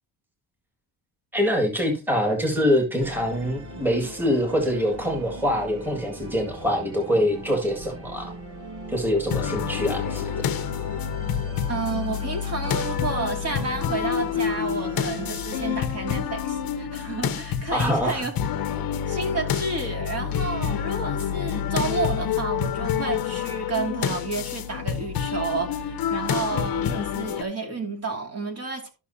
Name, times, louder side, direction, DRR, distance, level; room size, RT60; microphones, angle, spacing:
voice 1, 1.3-8.3 8.9-10.3 17.7-18.3, equal, 5° right, 2.1 m, -24 dB
Musical instrument, 3.0-15.8, right 1 dB, 70° right, 5.6 m, -39 dB
sound 1, 9.3-27.4, left 8 dB, 55° left, 0.9 m, -28 dB
voice 2, 11.7-18.3 19.1-28.9, right 4 dB, 35° right, 2.5 m, -31 dB
13.5 x 6.1 x 2.8 m
cardioid pair, 135°, 41 cm